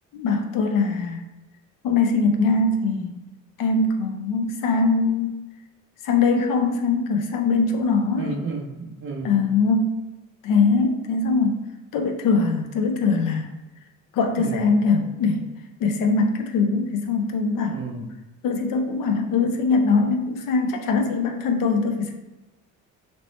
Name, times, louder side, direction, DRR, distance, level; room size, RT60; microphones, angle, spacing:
voice 1, 0.1-1.2 1.8-3.1 3.6-5.3 6.0-8.3 9.2-10.0 10.4-11.7 11.9-13.5 14.1-15.5 15.8-17.8 18.4-22.1, left 4 dB, 75° left, 5 dB, 0.6 m, -22 dB
voice 2, 8.2-9.4 14.4-14.7 17.7-18.1, right 4 dB, 40° right, 1 dB, 0.6 m, -32 dB
3.0 x 2.9 x 3.0 m, 1.1 s
cardioid pair, 130°, 33 cm